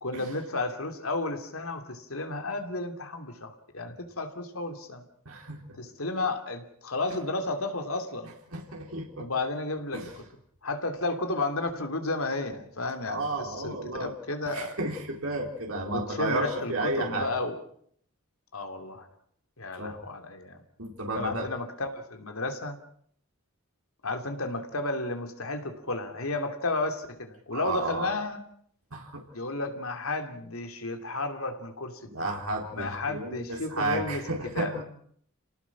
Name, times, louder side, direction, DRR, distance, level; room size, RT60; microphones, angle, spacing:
voice 1, 0.0-5.0 5.8-8.3 9.2-10.0 10.6-14.7 15.9-17.6 18.5-19.1 19.6-20.6 21.1-22.8 24.0-28.4 29.3-32.4 32.7-34.2 34.5-34.7, left 2 dB, 90° left, 6 dB, 2.9 m, -32 dB
voice 2, 5.3-5.6 8.5-9.3 9.9-10.1 13.0-14.1 14.4-17.3 19.7-20.0 20.8-21.5 27.5-28.1 28.9-29.2 32.0-34.8, right 2 dB, 85° right, 1 dB, 4.1 m, -32 dB
28.5 x 18.5 x 6.1 m, 0.64 s
head